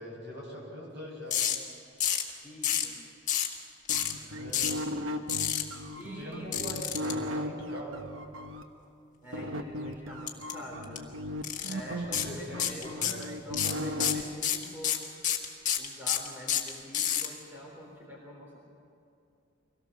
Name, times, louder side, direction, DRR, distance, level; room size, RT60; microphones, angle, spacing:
voice 1, 0.0-1.5 4.1-4.7 6.0-7.9 11.7-13.4, equal, 55° right, -2 dB, 6.3 m, -43 dB
sound 1, 1.3-1.6 2.0-2.3 2.6-2.9 3.3-3.6 3.9-4.1 4.5-4.8 5.3-5.6 6.5-7.1 10.3-10.5 10.8-11.0 11.4-11.7 12.1-12.3 12.6-13.2 13.5-17.3, left 10 dB, 40° left, 1.6 m, -28 dB
voice 2, 2.4-3.0 5.9-6.8 9.2-11.1 11.6-13.1 13.4-15.1 15.8-18.6, left 1 dB, 10° right, -3 dB, 3.6 m, -45 dB
sound 2, 3.9-8.6 9.3-14.2, left 1 dB, 90° right, 1.3 m, -36 dB
24.0 x 17.0 x 6.7 m, 2.5 s
head